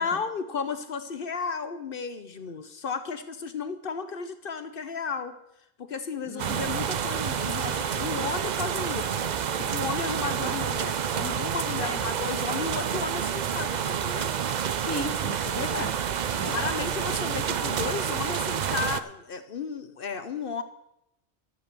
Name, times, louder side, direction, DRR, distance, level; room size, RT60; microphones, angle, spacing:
voice 1, 0.0-5.3 5.8-9.2 9.6-14.4 16.5-20.6, left 5 dB, 65° left, 10 dB, 1.0 m, -34 dB
voice 2, 6.3-6.8 11.8-12.1 14.8-16.0 16.3-16.6, left 2 dB, 15° left, 7 dB, 0.9 m, -35 dB
sound 1, 6.4-19.0, right 8 dB, 50° right, 0.6 m, -29 dB
12.5 x 8.3 x 6.7 m, 0.82 s
omnidirectional pair, 1.0 m